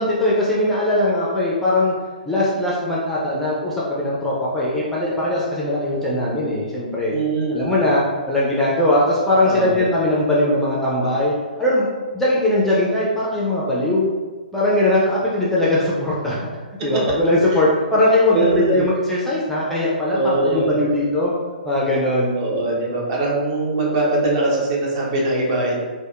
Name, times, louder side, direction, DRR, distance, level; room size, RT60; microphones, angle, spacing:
voice 1, 0.0-1.9 2.3-7.1 7.5-11.3 11.6-11.9 12.1-14.1 14.5-16.5 16.8-21.3 21.6-22.4, left 1 dB, 5° left, -6 dB, 0.4 m, -20 dB
voice 2, 7.1-7.7 9.4-9.8 16.8-17.0 18.3-18.8 20.1-21.0 22.3-25.8, right 2 dB, 40° right, -3 dB, 0.8 m, -22 dB
3.3 x 2.1 x 2.3 m, 1.3 s
figure-of-eight pair, 120°, 5 cm